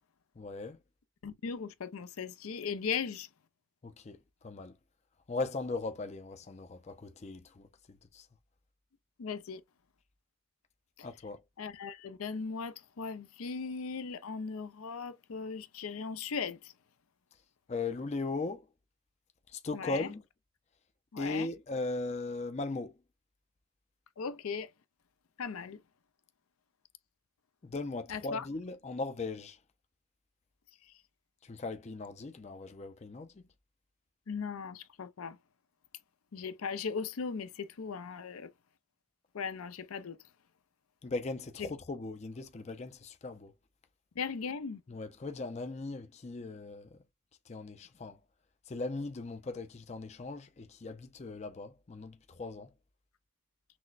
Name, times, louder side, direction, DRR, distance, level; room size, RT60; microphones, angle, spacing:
voice 1, 0.4-0.8 3.8-4.2 4.4-4.8 5.3-8.3 11.0-11.4 17.7-18.7 19.5-20.2 21.2-22.9 27.6-29.6 31.4-33.5 41.0-43.5 44.9-47.0 47.5-48.2 48.7-52.7, left 3 dB, 30° left, 0.4 m, -38 dB
voice 2, 1.2-3.3 9.2-9.6 11.6-16.7 19.7-20.1 21.1-21.5 24.2-24.7 25.4-25.8 28.1-28.4 34.3-35.4 36.3-38.5 39.3-40.2 41.6-41.7 44.2-44.8, left 5 dB, 85° left, 0.5 m, -38 dB
6.0 x 2.1 x 2.4 m
head